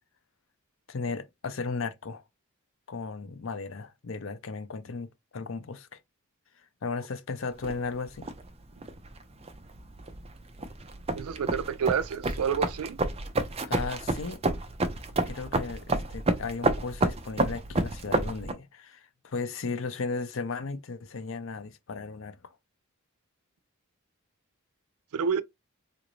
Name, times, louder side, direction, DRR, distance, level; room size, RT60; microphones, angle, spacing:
voice 1, 0.9-2.2 2.9-6.0 6.8-8.3 13.7-14.4 15.3-22.6, left 4 dB, 60° left, 0.6 m, -35 dB
sound 1, 7.6-18.5, right 2 dB, 25° right, 0.5 m, -30 dB
voice 2, 11.1-13.0 25.1-25.4, right 6 dB, 80° right, 0.4 m, -28 dB
3.8 x 2.5 x 3.1 m
head